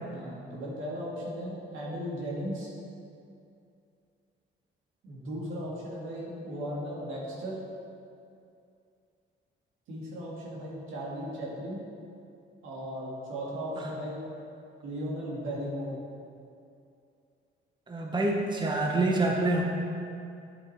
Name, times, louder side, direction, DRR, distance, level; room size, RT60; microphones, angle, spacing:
voice 1, 0.1-2.7 5.0-7.6 9.9-11.8 12.6-14.2 14.8-16.0, equal, 85° right, -5 dB, 2.0 m, -36 dB
voice 2, 17.9-19.6, right 2 dB, 25° right, 0 dB, 0.9 m, -26 dB
10.0 x 4.9 x 4.3 m, 2.5 s
cardioid pair, 90°, 20 cm